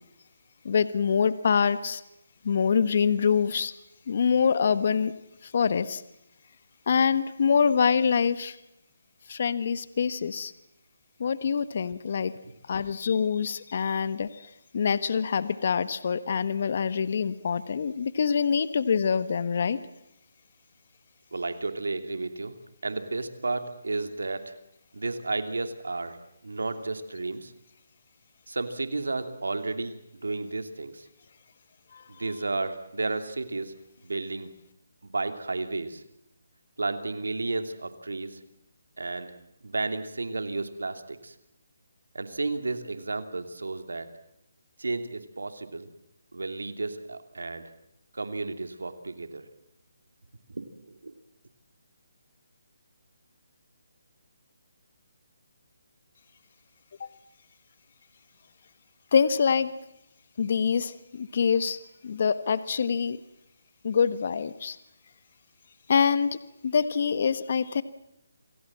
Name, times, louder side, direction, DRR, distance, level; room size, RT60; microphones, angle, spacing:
voice 1, 0.6-2.0 2.4-3.7 4.1-5.1 5.4-6.0 6.9-8.6 9.3-10.5 11.2-12.3 12.7-14.5 14.7-19.8 31.9-32.0 57.0-57.1 59.1-59.7 60.4-61.8 62.0-63.2 63.8-64.8 65.9-66.4 66.6-67.8, left 6 dB, 50° left, 14 dB, 1.4 m, -25 dB
voice 2, 21.3-22.5 22.8-24.5 24.9-27.5 28.5-29.9 30.2-31.1 32.1-33.7 34.0-34.5 35.0-36.0 36.8-38.4 39.0-39.3 39.6-41.3 42.1-44.1 44.8-45.9 46.3-47.7 48.1-49.5 50.5-51.1, right 3 dB, 90° right, 9 dB, 2.9 m, -32 dB
28.5 x 20.0 x 7.6 m, 0.85 s
hypercardioid pair, 160°, 0 cm